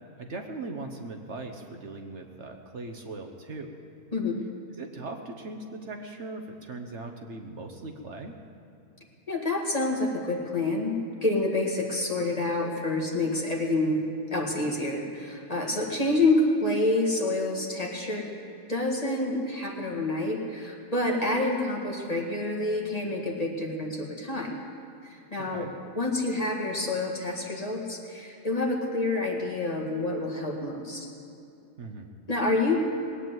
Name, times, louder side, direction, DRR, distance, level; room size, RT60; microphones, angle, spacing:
voice 1, 0.2-3.7 4.7-8.4 25.5-25.7 31.8-32.1, right 3 dB, 55° right, 4 dB, 1.3 m, -39 dB
voice 2, 4.1-4.4 9.3-14.0 14.3-18.3 18.7-24.6 25.0-25.7 26.0-31.1 32.3-32.8, left 2 dB, 25° left, -1 dB, 1.9 m, -28 dB
19.5 x 9.0 x 7.9 m, 2.7 s
omnidirectional pair, 1.5 m